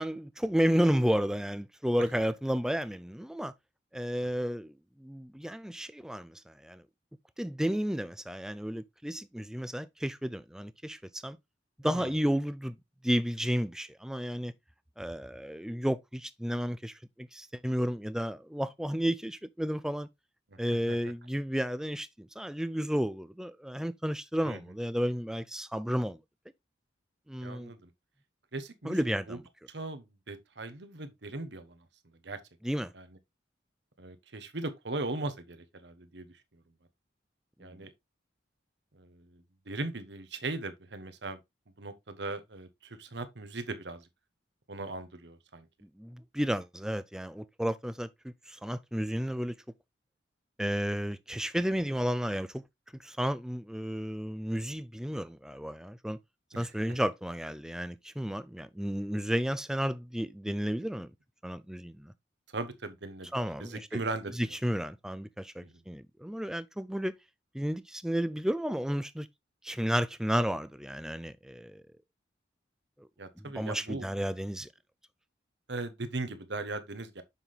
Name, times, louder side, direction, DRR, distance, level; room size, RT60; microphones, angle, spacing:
voice 1, 0.0-3.5 3.9-6.8 7.4-11.4 11.8-12.7 13.0-14.5 15.0-20.1 20.6-26.2 27.3-27.7 28.8-29.4 32.6-32.9 37.6-37.8 45.8-49.6 50.6-52.6 53.0-56.2 56.6-61.1 61.4-62.1 63.3-64.0 64.4-67.1 67.5-69.3 69.6-71.8 73.4-74.7, equal, 5° right, 0.4 m, -32 dB
voice 2, 20.5-21.0 24.4-24.6 27.4-27.9 28.5-29.4 29.7-31.8 32.2-32.4 32.9-33.0 34.0-36.3 37.6-37.9 38.9-41.4 41.8-44.1 44.7-45.7 56.5-57.0 62.5-64.3 65.6-65.7 73.2-74.1 75.7-77.2, right 2 dB, 65° right, 1.1 m, -39 dB
7.1 x 5.8 x 3.2 m
head